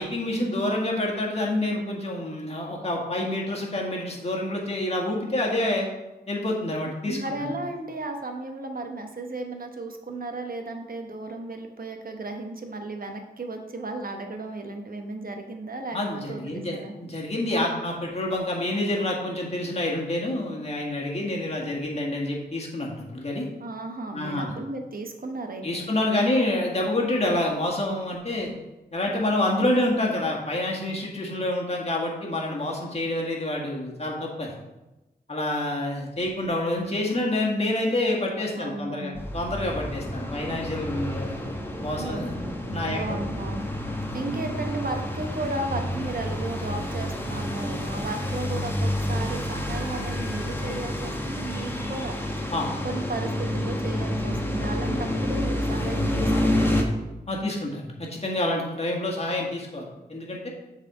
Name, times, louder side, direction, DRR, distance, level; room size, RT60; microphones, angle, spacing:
voice 1, 0.0-5.9 6.3-7.5 15.9-23.5 24.1-24.5 25.6-28.5 28.9-34.5 35.3-41.3 41.8-42.4 42.7-43.2 44.1-44.2 52.5-52.7 57.3-60.5, left 1 dB, 35° left, -2 dB, 1.8 m, -27 dB
voice 2, 7.0-16.9 23.6-25.9 38.6-39.2 42.0-42.6 42.9-43.7 44.1-52.2 52.8-56.9, right 2 dB, 55° right, 4 dB, 1.1 m, -34 dB
sound 1, 39.2-56.8, left 1 dB, 15° left, 1.1 m, -29 dB
7.3 x 4.2 x 5.0 m, 1.0 s
cardioid pair, 60°, 17 cm